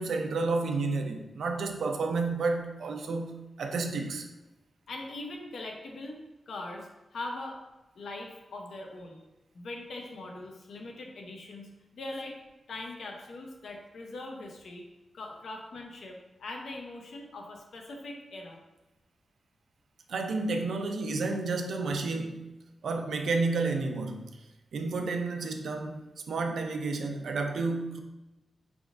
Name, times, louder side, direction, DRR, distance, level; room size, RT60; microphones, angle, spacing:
voice 1, 0.0-4.3 20.1-22.4 22.8-24.3 24.7-28.0, right 3 dB, 80° right, 4 dB, 0.5 m, -31 dB
voice 2, 4.9-6.2 6.5-7.6 7.9-9.2 9.5-12.4 12.7-14.8 15.1-18.6, left 2 dB, 75° left, 1 dB, 0.7 m, -41 dB
4.8 x 3.5 x 2.5 m, 1.0 s
wide cardioid pair, 175°, 0 cm